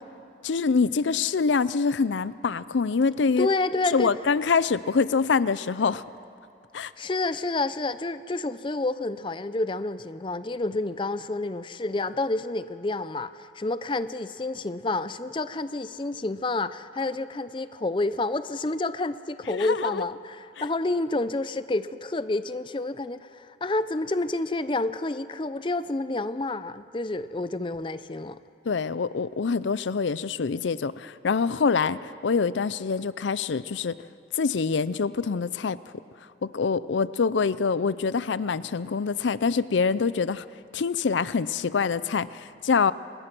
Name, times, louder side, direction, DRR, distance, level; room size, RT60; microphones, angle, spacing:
voice 1, 0.4-3.5 3.9-6.0 6.7-6.9 19.5-20.0 20.6-20.7 28.7-34.0 34.3-35.8 36.4-40.4 40.7-42.9, left 5 dB, 85° left, 17 dB, 0.5 m, -25 dB
voice 2, 3.4-4.1 7.0-28.4, left 2 dB, 25° left, 13 dB, 0.5 m, -29 dB
25.5 x 20.5 x 6.1 m, 2.6 s
head